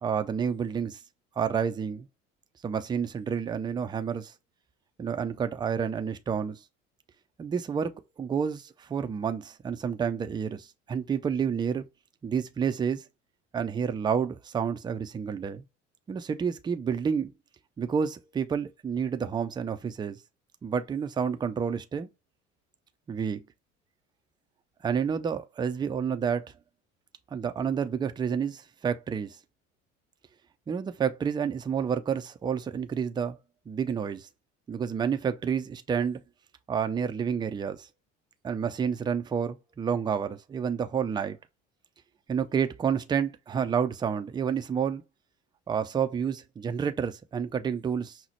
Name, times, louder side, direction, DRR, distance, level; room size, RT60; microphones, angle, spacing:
voice 1, 0.0-1.0 1.4-2.1 2.6-4.3 5.0-6.6 7.4-7.9 8.2-11.8 12.2-13.0 13.5-15.6 16.1-17.3 17.8-20.2 20.6-22.1 23.1-23.4 24.8-26.5 27.3-29.4 30.7-33.4 33.7-34.3 34.7-36.2 36.7-37.9 38.4-41.4 42.3-45.0 45.7-48.2, right 7 dB, 15° right, 0.3 m, -29 dB
5.4 x 2.0 x 2.9 m
hypercardioid pair, 65°, 37 cm